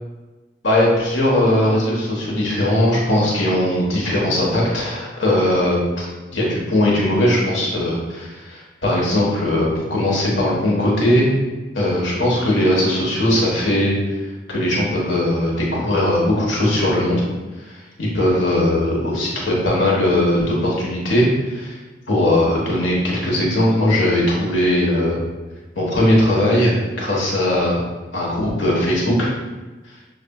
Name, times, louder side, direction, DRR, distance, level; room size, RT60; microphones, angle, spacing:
voice 1, 0.6-11.3 11.7-14.0 14.5-17.2 17.7-17.8 18.0-21.8 22.1-25.2 25.7-27.8 28.1-29.3, left 1 dB, 80° left, -4 dB, 1.2 m, -19 dB
6.7 x 2.4 x 2.3 m, 1.2 s
head